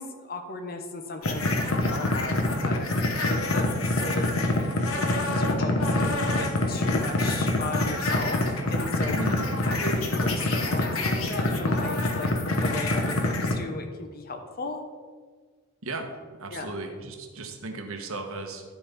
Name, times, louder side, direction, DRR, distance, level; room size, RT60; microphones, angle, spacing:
voice 1, 0.0-4.4 4.9-9.2 9.7-14.8 16.5-16.7, left 2 dB, 45° left, 5 dB, 0.9 m, -36 dB
sound 1, 1.2-13.5, left 2 dB, 70° left, 1.1 m, -25 dB
voice 2, 9.1-9.4 15.8-18.6, right 2 dB, 70° right, 4 dB, 1.1 m, -36 dB
12.0 x 4.1 x 5.2 m, 1.6 s
head